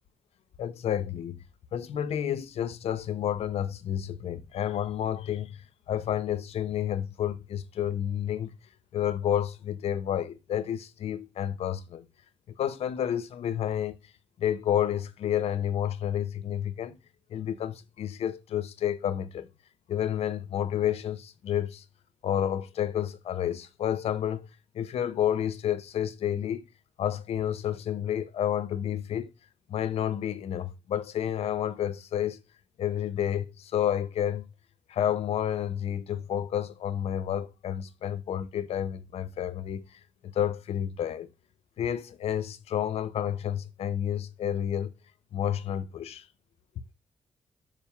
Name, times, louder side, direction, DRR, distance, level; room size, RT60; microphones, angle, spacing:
voice 1, 0.6-1.4 1.7-5.6 5.9-8.6 8.9-12.0 12.6-14.0 14.4-17.0 17.3-19.5 19.9-21.8 22.2-24.5 24.7-26.6 27.0-29.3 29.7-32.4 32.8-34.4 34.9-40.0 40.3-41.3 41.8-44.9 45.3-46.2, left 10 dB, 80° left, 0.8 m, -30 dB
7.4 x 3.4 x 5.8 m
cardioid pair, 80°, 10 cm